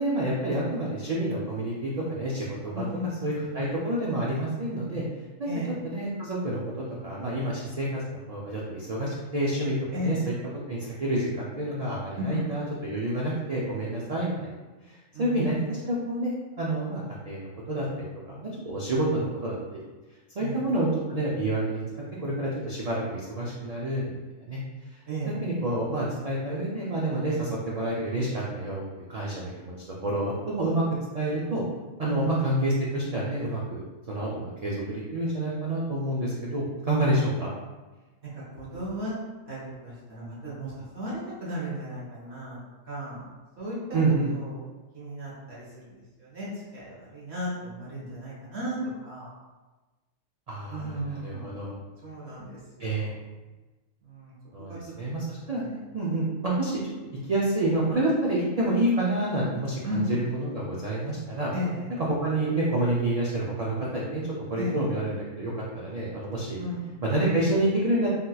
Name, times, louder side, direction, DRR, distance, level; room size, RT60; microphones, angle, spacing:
voice 1, 0.0-2.8 3.2-5.0 5.4-5.5 5.8-10.3 10.7-14.5 14.9-19.8 20.4-21.8 22.2-24.1 24.4-24.6 24.9-25.0 25.3-28.8 29.1-29.7 30.0-30.8 31.1-31.6 32.0-37.5 43.9-44.3 50.5-51.7 52.8-53.1 54.5-56.7 57.3-61.5 62.2-64.2 64.5-66.6 67.0-68.1, right 1 dB, 90° right, -5 dB, 0.3 m, -28 dB
voice 2, 2.7-3.1 5.4-5.8 9.9-10.2 12.1-12.5 15.1-15.5 20.4-20.6 25.0-25.4 32.0-32.3 38.3-39.1 39.5-42.6 42.8-43.2 43.6-43.8 44.3-44.6 44.9-49.3 50.7-53.0 54.0-54.8 55.1-55.7 59.8-60.1 61.5-61.9 64.5-64.8 66.6-66.8, equal, 60° right, -8 dB, 1.2 m, -35 dB
3.5 x 2.8 x 2.3 m, 1.2 s
omnidirectional pair, 1.4 m